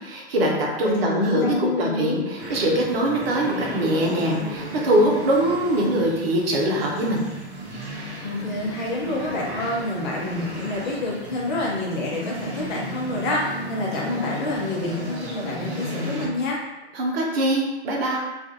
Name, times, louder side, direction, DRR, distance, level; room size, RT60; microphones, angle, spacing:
voice 1, 0.0-7.2 16.9-18.2, right 1 dB, 60° right, -1 dB, 0.8 m, -22 dB
voice 2, 0.8-2.2 8.2-16.6, left 2 dB, 45° left, -4 dB, 0.9 m, -27 dB
sound 1, 2.4-16.3, right 1 dB, 25° right, 0.5 m, -34 dB
2.4 x 2.3 x 2.7 m, 1.1 s
figure-of-eight pair, 105°, 34 cm